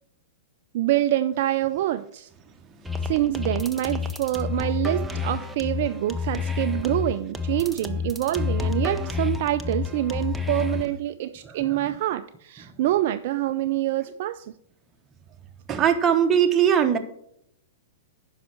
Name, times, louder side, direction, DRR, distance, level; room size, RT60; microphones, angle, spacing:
voice 1, 0.7-2.3 3.1-14.4, right 14 dB, 55° right, 10 dB, 0.4 m, -26 dB
sound 1, 2.8-10.9, left 5 dB, 5° right, 0.8 m, -29 dB
voice 2, 11.4-11.8 15.7-17.0, right 8 dB, 25° right, 5 dB, 1.1 m, -20 dB
10.0 x 5.8 x 4.5 m, 0.74 s
hypercardioid pair, 110°, 0 cm